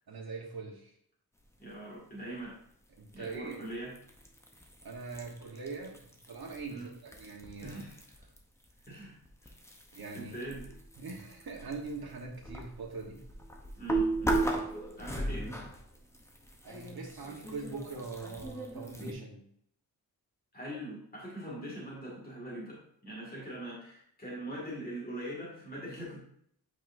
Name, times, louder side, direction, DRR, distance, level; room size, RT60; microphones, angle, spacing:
voice 1, 0.1-0.9 3.0-3.6 4.8-7.8 9.9-10.3 11.0-13.2 16.6-19.4, right 4 dB, 75° right, -1 dB, 1.3 m, -42 dB
voice 2, 1.6-2.6 3.1-3.9 6.7-6.9 7.6-8.0 8.9-9.2 9.4-9.5 10.1-10.7 13.8-14.4 15.0-15.5 20.5-26.2, right 1 dB, 25° left, -5 dB, 2.1 m, -42 dB
sound 1, 3.1-8.4 8.6-19.1, right 2 dB, 5° left, 0.8 m, -37 dB
8.3 x 4.7 x 2.6 m, 0.68 s
wide cardioid pair, 155°, 38 cm